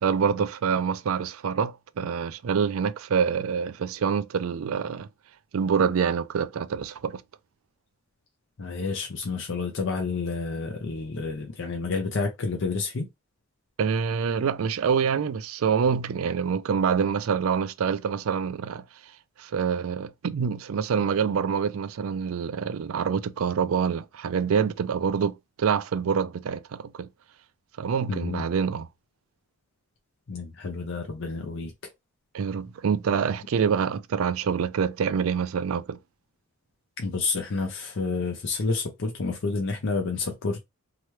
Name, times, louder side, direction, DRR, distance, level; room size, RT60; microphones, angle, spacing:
voice 1, 0.0-5.1 5.5-7.2 13.8-18.8 19.4-27.1 27.8-28.9 32.3-36.0, right 6 dB, 80° right, 0.4 m, -26 dB
voice 2, 8.6-13.1 28.1-28.4 30.3-31.7 37.0-40.6, left 4 dB, 60° left, 0.6 m, -29 dB
2.9 x 2.2 x 3.1 m
head